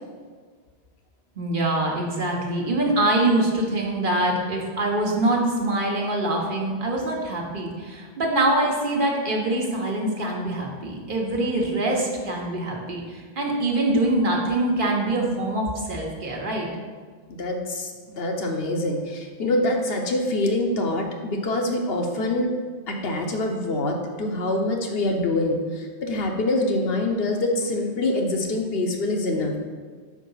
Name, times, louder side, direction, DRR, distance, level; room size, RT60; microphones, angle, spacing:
voice 1, 1.4-16.7, right 1 dB, 55° right, -1 dB, 1.2 m, -24 dB
voice 2, 17.3-22.5 22.9-29.6, left 2 dB, 70° left, 2 dB, 1.0 m, -25 dB
5.0 x 4.8 x 5.5 m, 1.5 s
omnidirectional pair, 1.0 m